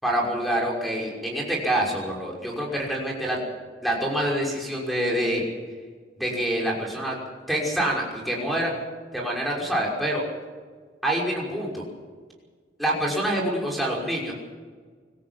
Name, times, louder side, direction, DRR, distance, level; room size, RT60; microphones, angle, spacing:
voice 1, 0.0-3.4 3.8-5.4 6.2-7.2 7.5-8.8 9.1-10.2 11.0-11.8 12.8-14.3, right 1 dB, ahead, -2 dB, 5.9 m, -26 dB
25.0 x 14.5 x 7.5 m, 1.5 s
head